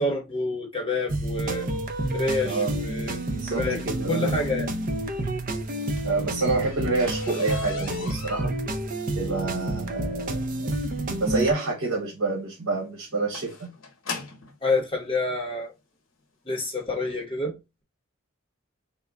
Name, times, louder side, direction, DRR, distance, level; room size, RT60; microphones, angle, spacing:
voice 1, 0.0-1.7 2.1-3.2 3.5-4.7 14.6-15.7 16.5-17.6, left 2 dB, 25° left, 0.8 m, -28 dB
sound 1, 1.1-11.5, right 1 dB, 40° right, 0.5 m, -29 dB
voice 2, 2.4-2.8 3.3-4.5 6.0-8.5 9.2-10.6 11.2-13.7, right 3 dB, 85° right, 1.0 m, -28 dB
sound 2, 5.7-14.6 15.5-15.6 16.1-16.3 16.6-16.7 17.1-17.2, left 4 dB, 70° left, 1.0 m, -41 dB
3.6 x 2.2 x 3.4 m
head